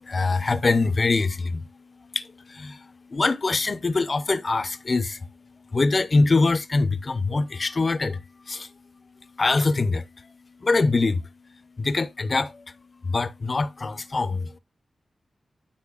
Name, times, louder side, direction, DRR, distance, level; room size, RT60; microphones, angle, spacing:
voice 1, 0.0-1.7 2.1-5.3 5.7-8.7 9.4-10.3 10.6-11.2 11.8-12.6 13.0-14.6, left 3 dB, 35° left, 0.6 m, -24 dB
12.5 x 5.4 x 2.3 m
wide cardioid pair, 125°, 0 cm